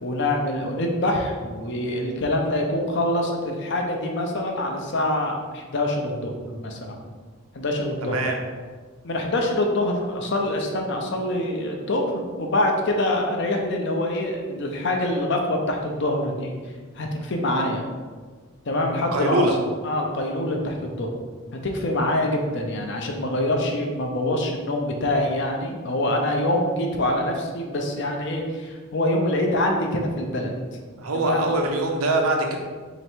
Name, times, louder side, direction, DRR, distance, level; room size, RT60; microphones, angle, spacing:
voice 1, 0.0-7.0 7.5-8.2 9.0-16.5 17.0-17.9 18.7-19.5 19.8-21.1 21.5-30.5 31.1-31.4, left 1 dB, 55° left, 2 dB, 0.6 m, -25 dB
voice 2, 8.0-8.4 18.8-19.5 31.0-32.6, right 2 dB, 80° right, 2 dB, 0.7 m, -23 dB
3.2 x 2.9 x 4.4 m, 1.5 s
head